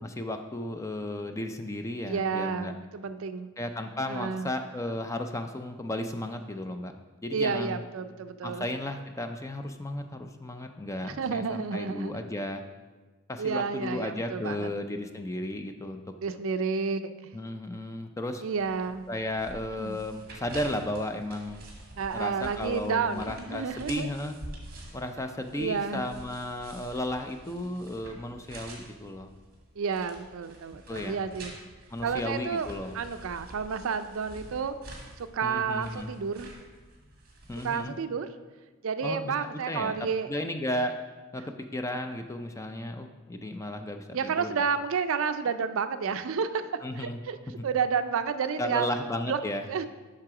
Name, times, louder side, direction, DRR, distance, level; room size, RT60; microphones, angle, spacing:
voice 1, 0.0-2.7 3.6-6.9 7.2-7.8 8.4-12.6 13.3-16.0 17.3-18.4 19.1-21.6 22.1-24.3 24.9-29.3 30.9-31.2 31.9-32.9 35.4-36.2 37.5-37.9 39.0-40.0 40.3-40.9 41.3-44.6 46.8-47.2 47.6-47.7 48.6-49.6, left 1 dB, 15° left, 6 dB, 0.4 m, -34 dB
voice 2, 2.1-3.5 4.1-4.5 7.3-8.6 11.2-12.2 13.4-14.7 16.2-17.3 18.4-19.0 19.8-20.0 22.0-24.1 25.6-26.1 29.8-31.5 32.0-32.7 32.9-34.7 35.2-36.5 37.6-38.3 38.8-40.3 44.1-46.6 47.0-47.4 47.6-48.9 49.3-49.4 49.7-49.9, right 5 dB, 65° right, 10 dB, 0.4 m, -30 dB
sound 1, 18.6-37.8, right 1 dB, 45° right, 1.7 m, -47 dB
7.6 x 5.9 x 4.8 m, 1.3 s
head